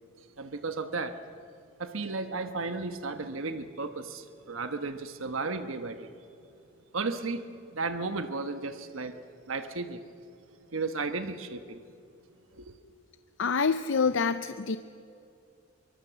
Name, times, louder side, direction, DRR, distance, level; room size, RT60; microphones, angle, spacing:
voice 1, 0.4-1.2 1.8-6.1 6.9-9.1 9.5-10.0 10.7-11.8 12.6-12.7, right 3 dB, 80° right, 8 dB, 1.2 m, -34 dB
voice 2, 13.4-14.8, left 5 dB, 65° left, 11 dB, 0.6 m, -26 dB
24.0 x 23.5 x 7.0 m, 2.5 s
head